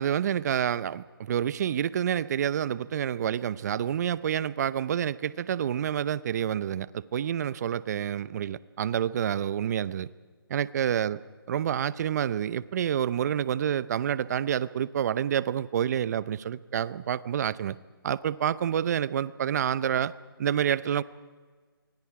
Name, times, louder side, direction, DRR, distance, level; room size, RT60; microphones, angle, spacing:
voice 1, 0.0-10.1 10.5-11.2 11.5-17.8 18.0-20.1 20.4-21.0, right 9 dB, 45° right, 18 dB, 0.7 m, -28 dB
29.0 x 24.5 x 4.8 m, 1.5 s
figure-of-eight pair, 145°, 13 cm